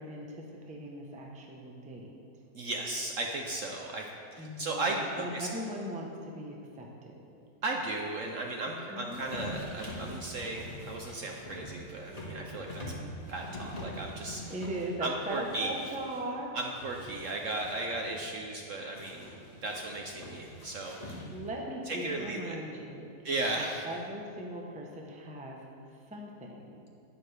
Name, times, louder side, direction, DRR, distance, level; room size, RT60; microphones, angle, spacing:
voice 1, 0.0-2.1 4.4-7.3 8.7-9.2 14.5-16.5 21.3-23.1 23.6-25.6 26.1-26.8, right 1 dB, 5° right, -1 dB, 0.6 m, -39 dB
voice 2, 2.5-4.0 4.3-5.5 7.6-12.9 13.3-14.4 15.0-15.7 16.5-19.3 19.6-21.2 21.9-22.6 23.2-23.8, right 2 dB, 60° right, 1 dB, 0.9 m, -35 dB
sound 1, 9.1-16.2 16.6-18.2 19.0-21.6, left 1 dB, 25° left, 1.6 m, -44 dB
11.0 x 9.3 x 3.4 m, 2.5 s
omnidirectional pair, 1.8 m